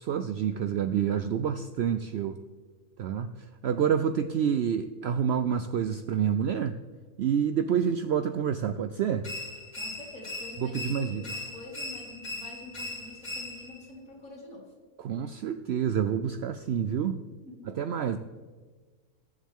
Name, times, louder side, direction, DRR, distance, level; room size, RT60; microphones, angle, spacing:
voice 1, 0.0-2.4 3.0-6.8 7.2-9.3 10.6-11.2 15.0-17.2 17.6-18.2, right 8 dB, 75° right, 10 dB, 0.6 m, -28 dB
sound 1, 9.2-13.9, left 2 dB, 30° left, 2.2 m, -39 dB
voice 2, 9.8-14.7 17.4-17.7, left 2 dB, 60° left, -4 dB, 3.0 m, -46 dB
21.0 x 7.3 x 3.6 m, 1.4 s
omnidirectional pair, 1.6 m